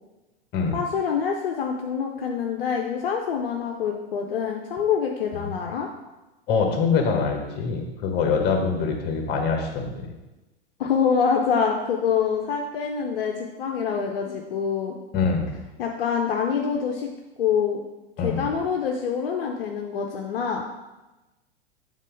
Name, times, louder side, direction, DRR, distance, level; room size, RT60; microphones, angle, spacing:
voice 1, 0.7-5.9 10.8-14.9 15.8-17.1 17.4-17.8 18.2-20.6, left 6 dB, 60° left, 1 dB, 0.8 m, -25 dB
voice 2, 6.5-9.9 15.1-15.5 18.2-18.4, left 5 dB, 30° left, 3 dB, 1.4 m, -24 dB
7.4 x 3.8 x 5.2 m, 1.1 s
figure-of-eight pair, 95°, 32 cm